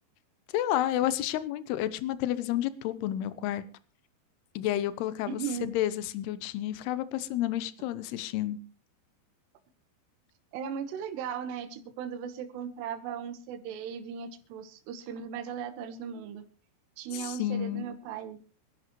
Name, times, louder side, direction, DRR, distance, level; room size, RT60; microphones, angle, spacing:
voice 1, 0.5-3.6 4.6-8.6 17.1-17.9, left 12 dB, 75° left, 14 dB, 2.9 m, -30 dB
voice 2, 5.3-5.7 10.5-16.4 17.0-18.4, right 7 dB, 80° right, 8 dB, 3.4 m, -37 dB
26.0 x 11.0 x 3.1 m, 0.35 s
omnidirectional pair, 4.8 m